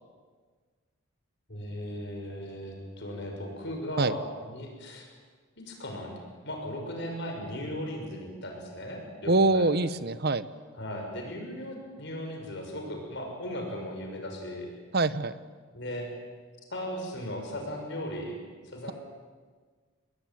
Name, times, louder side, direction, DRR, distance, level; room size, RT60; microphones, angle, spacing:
voice 1, 1.5-5.1 5.7-6.1 6.4-9.7 10.7-14.7 15.7-16.1 16.7-18.4 18.6-18.9, equal, 55° left, 2 dB, 6.4 m, -37 dB
voice 2, 9.3-10.4 14.9-15.3, right 2 dB, 45° right, 14 dB, 1.0 m, -24 dB
28.0 x 21.0 x 9.3 m, 1.5 s
head